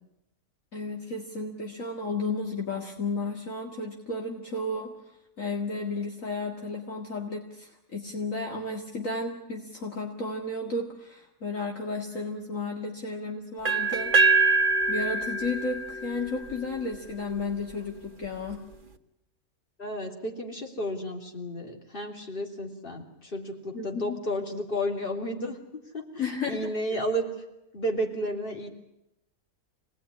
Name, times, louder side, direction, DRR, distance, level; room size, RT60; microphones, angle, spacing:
voice 1, 0.7-4.9 5.4-14.6 14.9-18.6 23.7-24.2 26.2-27.0, left 3 dB, 55° left, 1 dB, 2.4 m, -33 dB
sound 1, 13.6-17.5, right 3 dB, 35° right, 1.5 m, -25 dB
voice 2, 19.8-27.2 27.7-28.7, equal, 35° left, 3 dB, 3.2 m, -32 dB
26.5 x 19.0 x 9.9 m, 0.88 s
omnidirectional pair, 1.6 m